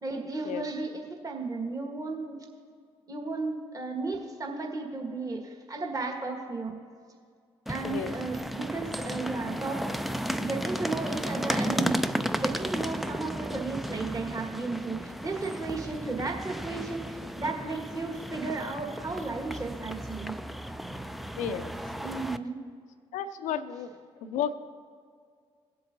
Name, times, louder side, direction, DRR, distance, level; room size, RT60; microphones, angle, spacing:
voice 1, 0.0-2.4 3.1-6.8 7.7-10.0 10.4-12.0 12.4-20.3 22.0-22.6, right 3 dB, 25° right, 1 dB, 1.7 m, -34 dB
sound 1, 7.7-22.4, equal, ahead, 0.4 m, -34 dB
voice 2, 21.4-21.7 23.1-23.9 24.2-24.5, left 8 dB, 60° left, 12 dB, 0.6 m, -32 dB
18.5 x 7.8 x 2.7 m, 2.1 s
figure-of-eight pair, 45°, 14 cm